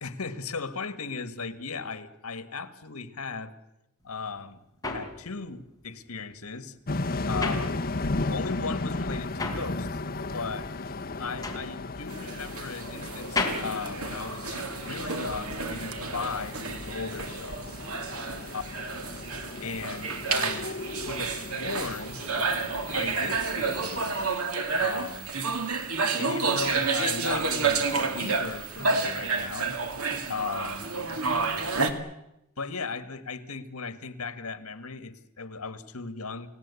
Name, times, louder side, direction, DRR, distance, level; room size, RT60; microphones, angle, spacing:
voice 1, 0.0-3.5 4.0-4.6 4.9-6.8 7.3-7.8 8.3-10.0 10.3-10.7 11.2-17.7 18.5-18.6 19.6-22.2 22.9-24.1 24.8-25.3 26.2-29.7 30.3-30.9 32.6-36.5, left 4 dB, 75° left, 12 dB, 1.8 m, -36 dB
sound 1, 4.1-8.4 8.6-14.9, left 3 dB, 15° left, 4.2 m, -35 dB
sound 2, 6.9-24.4, left 2 dB, 45° left, 1.1 m, -35 dB
sound 3, 12.1-31.9, right 4 dB, 75° right, 2.4 m, -30 dB
29.5 x 18.0 x 8.4 m, 0.88 s
head